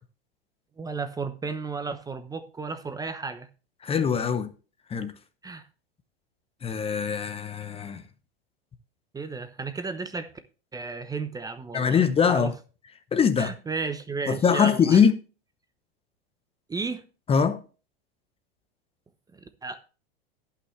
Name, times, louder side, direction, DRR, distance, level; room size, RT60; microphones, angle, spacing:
voice 1, 0.8-3.5 5.4-5.7 9.1-10.3 10.7-12.5 13.4-15.0 16.7-17.0 19.3-19.8, right 4 dB, 10° right, 0.8 m, -33 dB
voice 2, 3.8-4.5 4.9-5.1 6.6-8.0 11.7-12.5 13.1-13.5 14.3-15.1 17.3-17.6, left 7 dB, 20° left, 0.8 m, -22 dB
17.5 x 5.8 x 3.2 m
hypercardioid pair, 110°, 30 cm